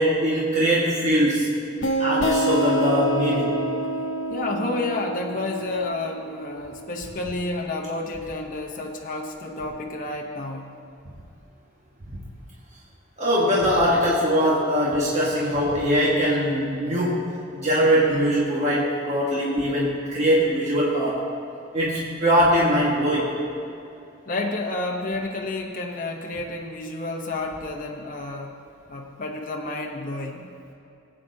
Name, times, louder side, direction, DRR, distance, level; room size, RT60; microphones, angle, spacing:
voice 1, 0.0-1.5 2.0-3.6 12.1-12.2 13.2-17.2 17.5-21.2 21.7-23.3, equal, 40° right, -6 dB, 1.6 m, -21 dB
sound 1, 1.8-7.2, right 1 dB, 75° left, 0.8 m, -27 dB
voice 2, 4.3-10.7 24.3-28.5 28.9-30.5, left 2 dB, 45° left, 0 dB, 0.9 m, -30 dB
18.0 x 8.7 x 2.8 m, 2.7 s
head